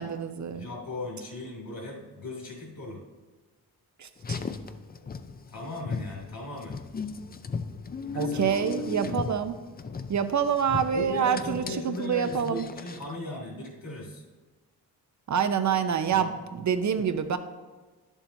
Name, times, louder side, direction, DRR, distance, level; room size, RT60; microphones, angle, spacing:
voice 1, 0.0-0.7 4.0-4.4 8.1-9.6 10.1-12.6 15.3-17.4, right 7 dB, 45° right, 10 dB, 0.7 m, -27 dB
voice 2, 0.5-3.0 5.5-6.8 8.1-9.3 10.9-14.2 16.1-16.4, left 2 dB, 60° left, -1 dB, 2.7 m, -38 dB
Car, 4.2-13.1, left 5 dB, 25° left, 0.4 m, -37 dB
10.5 x 7.3 x 2.7 m, 1.3 s
cardioid pair, 85°, 38 cm